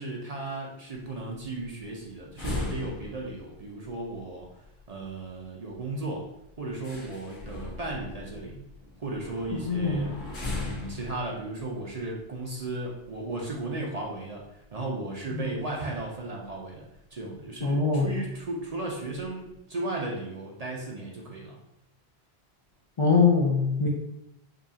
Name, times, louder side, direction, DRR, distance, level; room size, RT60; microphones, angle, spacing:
voice 1, 0.0-4.5 4.9-6.3 6.6-8.6 9.0-10.1 10.6-14.4 14.7-16.9 17.1-21.6, right 2 dB, 45° right, -2 dB, 0.6 m, -35 dB
sound 1, 1.0-13.6 14.0-14.1 14.4-14.6 15.6-16.2 16.5-16.6 16.9-17.0 17.6-17.7 18.0-18.3 18.7-19.4, left 2 dB, 90° left, 1.6 m, -39 dB
voice 2, 9.7-10.1 15.3-15.5 17.6-18.1 23.0-23.9, left 4 dB, 40° left, -4 dB, 0.5 m, -23 dB
5.0 x 2.3 x 2.7 m, 0.83 s
omnidirectional pair, 1.1 m